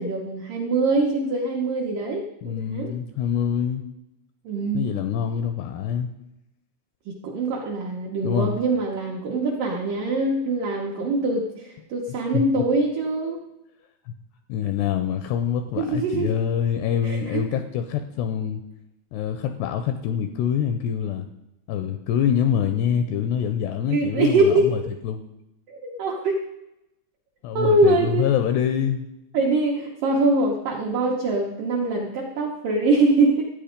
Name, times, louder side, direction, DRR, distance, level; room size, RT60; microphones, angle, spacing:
voice 1, 0.0-2.9 4.5-4.9 7.1-13.4 15.8-16.4 17.0-17.4 23.9-24.9 25.7-26.4 27.5-28.2 29.3-33.5, right 2 dB, 75° right, -1 dB, 2.0 m, -23 dB
voice 2, 2.4-3.8 4.7-6.1 8.2-8.6 12.1-12.6 14.1-14.2 14.5-18.6 19.1-21.3 21.7-25.2 27.4-29.1, left 8 dB, 85° left, 8 dB, 2.4 m, -25 dB
13.0 x 8.9 x 5.1 m, 0.90 s
omnidirectional pair, 5.4 m